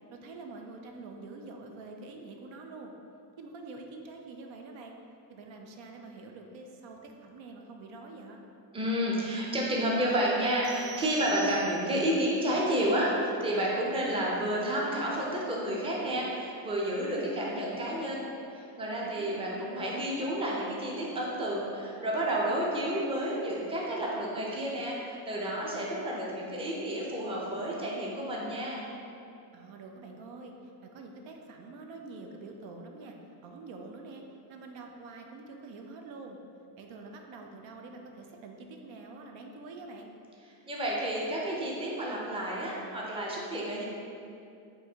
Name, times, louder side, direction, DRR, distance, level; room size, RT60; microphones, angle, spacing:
voice 1, 0.1-2.9 3.4-4.9 5.3-8.4 19.0-19.9 29.5-33.2 33.4-34.2 34.5-36.4 36.8-40.1, right 3 dB, 75° right, 2 dB, 0.6 m, -46 dB
voice 2, 8.7-18.3 18.5-28.8 40.7-43.8, right 1 dB, 10° right, -4 dB, 0.5 m, -30 dB
sound 1, 10.6-12.2, right 9 dB, 40° right, 0.8 m, -44 dB
3.6 x 2.7 x 4.3 m, 2.6 s
cardioid pair, 125°, 47 cm